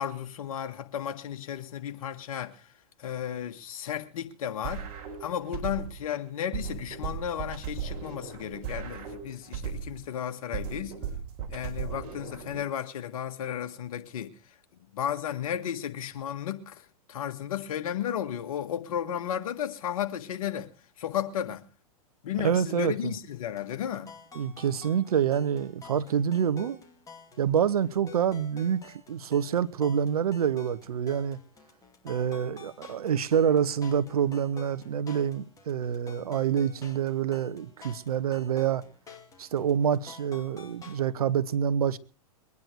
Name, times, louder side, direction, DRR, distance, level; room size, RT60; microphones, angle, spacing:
voice 1, 0.0-2.7 3.0-4.9 5.2-11.0 11.5-14.4 14.9-20.7 21.0-21.6 22.2-24.1, left 9 dB, 65° left, 1.7 m, -34 dB
sound 1, 4.6-6.1 6.5-10.1 10.5-12.6, right 7 dB, 45° right, 4.1 m, -37 dB
voice 2, 22.4-23.1 24.3-26.8 27.4-31.4 32.0-38.8 39.4-42.0, right 8 dB, 75° right, 1.0 m, -27 dB
sound 2, 23.5-41.1, left 4 dB, 15° left, 2.6 m, -50 dB
23.0 x 9.7 x 4.5 m
hypercardioid pair, 115°, 19 cm